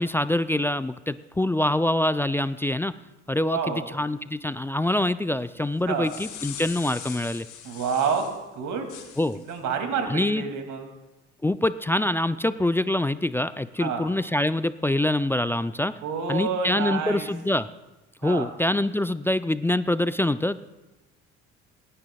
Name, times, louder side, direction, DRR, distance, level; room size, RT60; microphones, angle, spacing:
voice 1, 0.0-2.9 3.3-7.5 9.2-9.4 10.1-10.4 11.4-15.9 16.3-17.7 18.2-20.6, left 1 dB, 5° left, 14 dB, 0.3 m, -25 dB
voice 2, 3.5-3.8 5.9-6.1 7.6-8.3 8.5-8.9 9.5-10.9 13.8-14.0 16.0-17.3 18.2-18.5, right 6 dB, 55° right, 5 dB, 2.5 m, -28 dB
sound 1, 5.8-8.4 8.9-9.6, left 9 dB, 60° left, 3.1 m, -40 dB
28.5 x 10.0 x 2.3 m, 1.1 s
hypercardioid pair, 65°, 35 cm